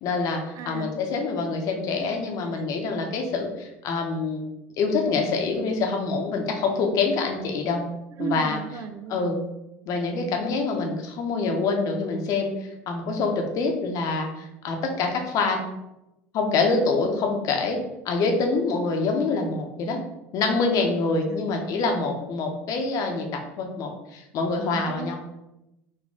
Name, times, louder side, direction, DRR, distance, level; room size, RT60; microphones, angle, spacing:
voice 1, 0.0-4.4 4.8-7.8 8.2-8.6 9.1-9.4 9.9-15.7 16.3-17.8 18.0-20.0 20.3-25.2, left 4 dB, 55° left, 3 dB, 0.8 m, -26 dB
voice 2, 0.5-0.9 1.9-2.7 8.2-9.3 21.2-21.9 24.7-25.2, right 5 dB, 50° right, 7 dB, 0.5 m, -36 dB
4.0 x 2.7 x 3.6 m, 0.91 s
hypercardioid pair, 70°, 7 cm